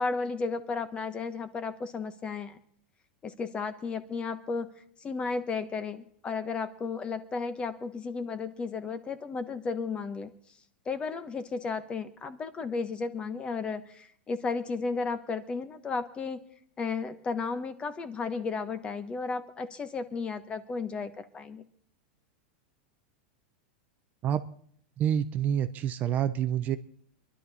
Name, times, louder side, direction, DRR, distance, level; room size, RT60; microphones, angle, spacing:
voice 1, 0.0-2.6 3.2-4.7 5.0-10.3 10.9-16.4 16.8-21.6, left 4 dB, 20° left, 12 dB, 1.0 m, -34 dB
voice 2, 25.0-26.8, right 9 dB, 30° right, 11 dB, 0.7 m, -27 dB
23.5 x 11.5 x 4.1 m, 0.62 s
supercardioid pair, 145°, 6 cm